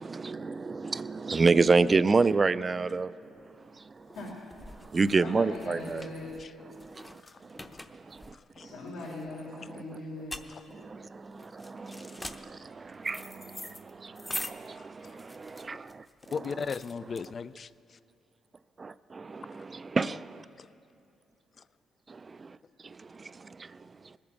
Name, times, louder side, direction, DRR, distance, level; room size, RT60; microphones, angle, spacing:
voice 1, 0.0-3.1 3.8-4.1 4.7-6.1 6.7-7.6 7.9-8.3 8.6-8.7 9.7-9.8 10.7-16.0 18.8-20.4 22.1-22.6 22.8-24.1, right 4 dB, 30° right, 0.4 m, -29 dB
sound 1, 3.3-17.7, left 1 dB, 15° left, 0.8 m, -45 dB
voice 2, 4.1-4.5 5.2-6.3 8.6-10.6, left 2 dB, 90° left, 3.7 m, -40 dB
voice 3, 14.7-15.2 16.3-17.7, left 5 dB, 45° left, 0.4 m, -36 dB
20.0 x 8.8 x 7.1 m
cardioid pair, 90°, 0 cm